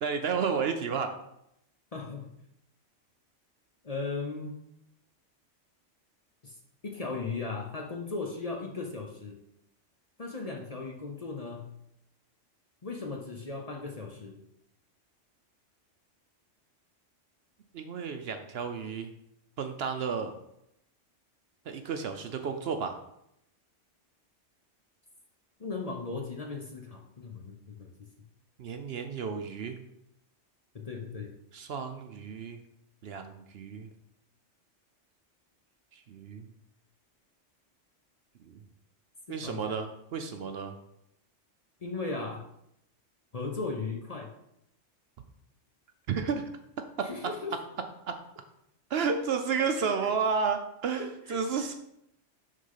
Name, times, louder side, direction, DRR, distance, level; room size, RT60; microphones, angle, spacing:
voice 1, 0.0-1.1 17.7-19.1 19.6-20.3 21.7-23.0 28.6-29.8 31.5-32.6 33.0-33.9 35.9-36.5 38.4-38.6 39.3-40.7 46.1-46.5 47.0-47.1 48.1-48.2 48.9-51.8, right 6 dB, 60° right, 7 dB, 0.8 m, -32 dB
voice 2, 1.9-2.3 3.8-4.6 6.4-6.6 6.8-9.4 10.2-11.7 12.8-14.4 25.6-28.1 30.7-31.3 39.3-39.8 41.8-42.4 43.3-44.3 47.0-47.6 50.0-50.1 51.0-51.8, left 4 dB, 35° left, 1 dB, 0.7 m, -37 dB
6.4 x 3.8 x 5.7 m, 0.79 s
omnidirectional pair, 1.3 m